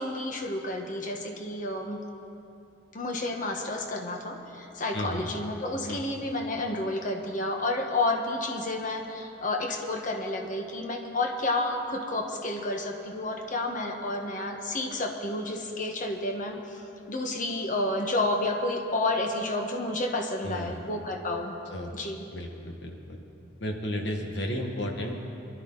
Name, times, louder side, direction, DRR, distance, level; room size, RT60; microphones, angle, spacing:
voice 1, 0.0-2.0 2.9-16.8 17.1-21.6 21.9-22.2, left 2 dB, 45° left, 2 dB, 1.4 m, -30 dB
voice 2, 4.9-5.3 5.9-6.0 20.4-20.9 21.7-22.0 22.3-23.2 23.6-25.2, equal, 70° left, 2 dB, 1.7 m, -33 dB
24.0 x 12.5 x 4.0 m, 2.7 s
head